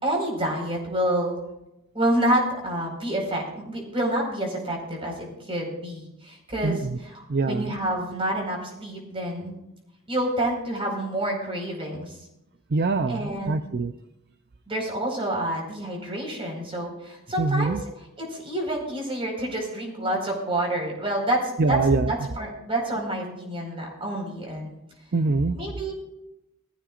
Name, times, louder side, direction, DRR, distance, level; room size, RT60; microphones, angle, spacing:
voice 1, 0.0-1.3 1.9-9.5 10.1-12.2 13.1-13.6 14.7-21.8 22.1-24.7 25.5-25.9, right 1 dB, 25° right, 0 dB, 4.8 m, -28 dB
voice 2, 6.6-7.0 7.3-7.7 12.7-13.9 17.4-17.8 21.6-22.1 25.1-25.6, right 3 dB, 50° right, 9 dB, 0.6 m, -24 dB
20.0 x 15.0 x 2.5 m, 0.90 s
head